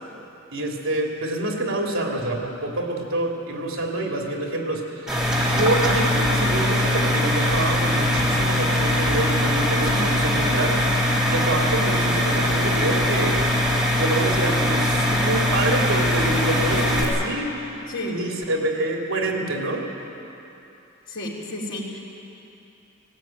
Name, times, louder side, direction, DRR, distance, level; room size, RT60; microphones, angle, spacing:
voice 1, 0.5-10.8 11.3-13.5 14.0-17.7 18.0-19.9, right 2 dB, 70° right, 0 dB, 3.1 m, -27 dB
sound 1, 5.1-17.0, left 1 dB, 5° right, 3.4 m, -21 dB
voice 2, 21.1-22.0, left 1 dB, 60° left, -3 dB, 3.9 m, -31 dB
18.5 x 17.5 x 9.2 m, 2.9 s
head